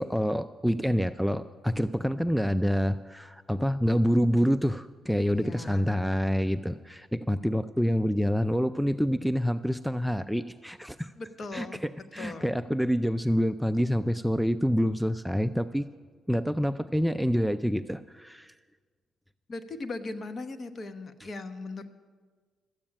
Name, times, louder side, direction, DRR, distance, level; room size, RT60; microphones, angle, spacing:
voice 1, 0.0-11.1 11.5-15.9 16.3-18.5, equal, ahead, 11 dB, 0.3 m, -27 dB
voice 2, 5.3-5.9 11.2-11.8 12.2-12.5 19.5-21.9, left 3 dB, 40° left, 9 dB, 1.0 m, -39 dB
13.5 x 8.7 x 8.7 m, 1.5 s
cardioid pair, 90°, 0 cm